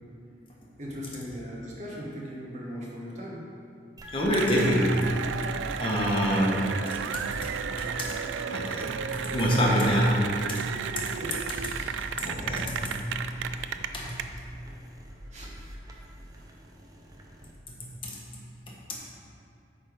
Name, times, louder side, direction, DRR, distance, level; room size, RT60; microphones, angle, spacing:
voice 1, 0.8-3.5 11.2-11.4 11.7-11.9 14.6-14.8 15.2-15.6 16.4-16.5, equal, 40° right, -4 dB, 1.3 m, -39 dB
sound 1, 4.0-17.5, equal, 20° right, 0.5 m, -45 dB
voice 2, 4.1-5.2 5.8-8.1 8.5-10.6 11.0-11.1 12.0-13.1 13.9-14.3 17.7-18.2 18.7-18.9, equal, 25° left, -4 dB, 1.0 m, -27 dB
Cheering / Applause, 4.3-14.2, right 7 dB, 80° right, 0.3 m, -33 dB
8.4 x 3.5 x 5.0 m, 2.5 s
head